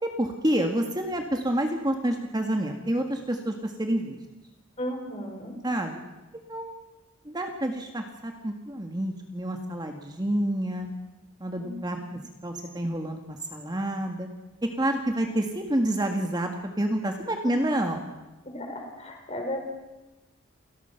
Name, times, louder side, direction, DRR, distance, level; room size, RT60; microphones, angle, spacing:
voice 1, 0.0-4.2 5.6-6.0 6.5-6.7 7.2-10.9 11.4-12.0 12.4-14.3 14.8-18.1, right 1 dB, 20° right, 4 dB, 1.8 m, -28 dB
voice 2, 4.8-5.5 11.6-12.2 17.6-17.7 18.4-19.6, left 1 dB, 30° left, 3 dB, 4.7 m, -35 dB
28.5 x 18.5 x 5.9 m, 1.1 s
head